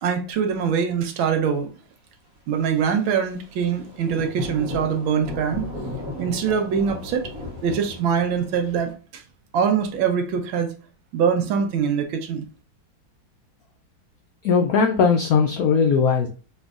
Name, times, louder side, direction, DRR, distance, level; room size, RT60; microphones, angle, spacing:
voice 1, 0.0-1.7 2.5-5.6 6.2-7.3 7.6-9.2 9.5-10.7 11.1-12.4, right 7 dB, 85° right, 5 dB, 1.6 m, -23 dB
Thunder / Rain, 3.4-8.9, left 2 dB, 50° right, 1.4 m, -35 dB
voice 2, 14.4-16.3, left 5 dB, 90° left, 4 dB, 0.7 m, -19 dB
4.3 x 3.2 x 2.4 m, 0.36 s
omnidirectional pair, 2.1 m